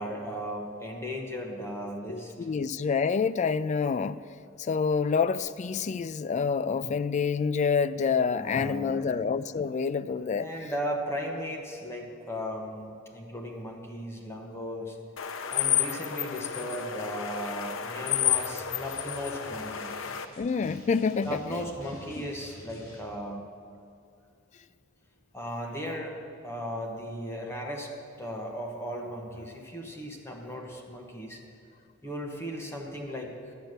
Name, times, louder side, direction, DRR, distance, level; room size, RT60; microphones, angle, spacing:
voice 1, 0.0-2.3 8.3-9.1 10.3-15.0 15.5-19.9 21.2-23.4 25.3-31.4 32.0-33.5, equal, 15° left, 0 dB, 1.2 m, -36 dB
voice 2, 2.1-4.2 4.6-10.5 20.4-21.4, left 5 dB, 35° left, 14 dB, 0.3 m, -27 dB
sound 1, 15.2-20.3, left 9 dB, 75° left, 0.7 m, -31 dB
Drum, 18.3-23.0, left 1 dB, 90° left, 3.2 m, -51 dB
12.5 x 9.2 x 6.6 m, 2.3 s
head